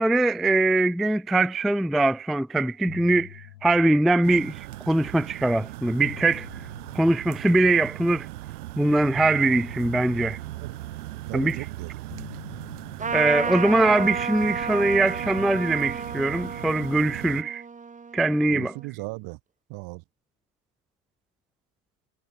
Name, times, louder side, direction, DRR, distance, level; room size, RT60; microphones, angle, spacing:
voice 1, 0.0-6.5 6.9-8.3 8.8-10.4 11.3-11.6 13.1-17.6 18.1-18.7, right 2 dB, ahead, 0.3 m, -22 dB
sound 1, 2.2-2.5 2.7-5.0 5.7-8.1 9.2-11.6 12.1-14.7, left 15 dB, 75° left, 7.3 m, -48 dB
sound 2, 4.2-17.4, right 17 dB, 70° right, 3.3 m, -38 dB
voice 2, 11.3-12.0 18.5-19.4 19.7-20.0, right 27 dB, 50° right, 1.2 m, -37 dB
Trumpet, 13.0-18.8, right 5 dB, 15° right, 1.5 m, -32 dB
hypercardioid pair, 80°, 47 cm